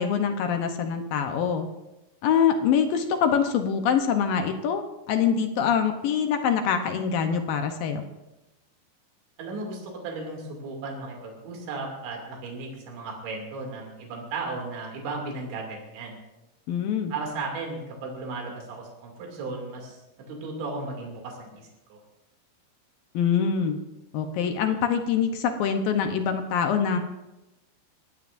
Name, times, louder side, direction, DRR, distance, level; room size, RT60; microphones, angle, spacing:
voice 1, 0.0-1.7 2.2-8.0 16.7-17.1 23.1-23.8 24.1-27.0, left 7 dB, 75° left, 6 dB, 2.2 m, -24 dB
voice 2, 9.4-16.2 17.1-20.0 20.3-22.0, right 3 dB, 85° right, 0 dB, 5.0 m, -35 dB
23.0 x 16.5 x 2.6 m, 0.97 s
omnidirectional pair, 5.1 m